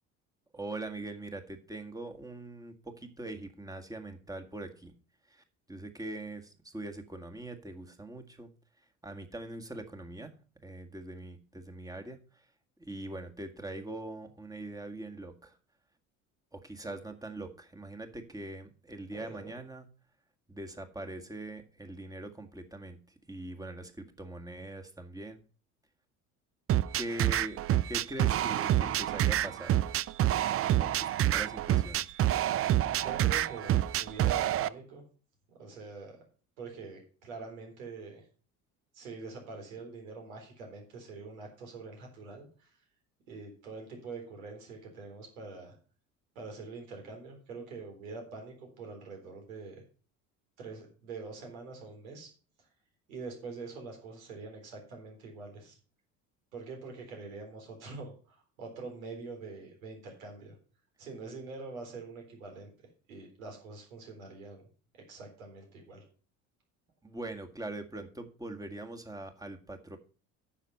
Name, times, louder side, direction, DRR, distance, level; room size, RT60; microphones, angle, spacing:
voice 1, 0.5-4.9 5.3-8.5 9.0-10.3 10.6-12.5 12.8-15.6 16.5-19.9 20.5-23.0 23.3-25.4 27.0-27.6 27.9-29.7 30.7-32.0 67.0-70.0, right 2 dB, 10° right, 5 dB, 1.8 m, -42 dB
voice 2, 19.1-19.5 33.0-35.0 35.6-36.2 36.6-38.2 38.9-42.7 43.3-45.8 46.4-49.8 50.6-52.3 53.1-55.8 56.5-60.6 61.0-62.7 63.1-64.6 64.9-66.0, right 4 dB, 80° right, 2 dB, 3.9 m, -44 dB
sound 1, 26.7-34.7, right 13 dB, 35° right, 0.5 m, -27 dB
10.0 x 6.7 x 5.5 m, 0.40 s
hypercardioid pair, 60°, 41 cm